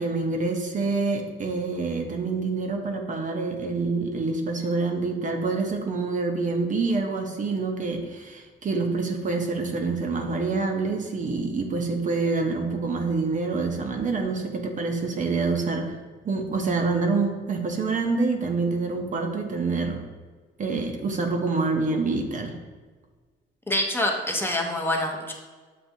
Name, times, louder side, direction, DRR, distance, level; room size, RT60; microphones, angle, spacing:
voice 1, 0.0-16.0 16.2-20.0 20.6-22.6, right 3 dB, 40° right, 3 dB, 0.5 m, -26 dB
voice 2, 23.7-25.3, left 1 dB, 10° left, 1 dB, 0.6 m, -26 dB
6.8 x 2.3 x 2.6 m, 1.4 s
cardioid pair, 90°, 20 cm